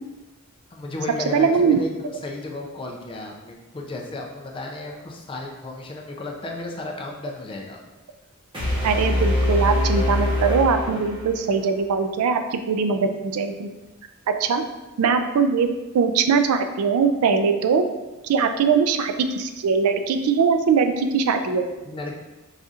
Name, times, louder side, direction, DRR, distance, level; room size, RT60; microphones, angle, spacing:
voice 1, 0.7-7.8 21.9-22.2, left 2 dB, 25° left, 0 dB, 0.4 m, -34 dB
voice 2, 1.3-1.8 8.8-13.7 14.4-14.6 15.0-15.7 15.9-17.8 18.2-21.7, right 5 dB, 70° right, 7 dB, 0.3 m, -21 dB
sound 1, 8.5-11.6, left 1 dB, 25° right, 0.9 m, -23 dB
4.9 x 2.7 x 2.4 m, 1.1 s
head